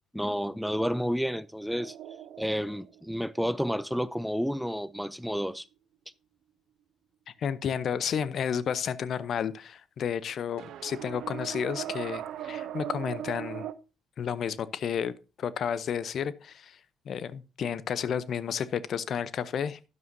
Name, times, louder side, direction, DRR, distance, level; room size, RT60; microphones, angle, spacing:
voice 1, 0.1-1.9 2.4-5.7, equal, ahead, 0.4 m, -30 dB
sound 1, 1.7-4.1 10.6-13.7, right 11 dB, 60° right, 0.6 m, -39 dB
voice 2, 7.4-13.7 14.2-15.1 15.4-16.8 17.1-19.9, left 8 dB, 55° left, 0.6 m, -31 dB
12.0 x 9.6 x 2.7 m
hypercardioid pair, 50°, 0 cm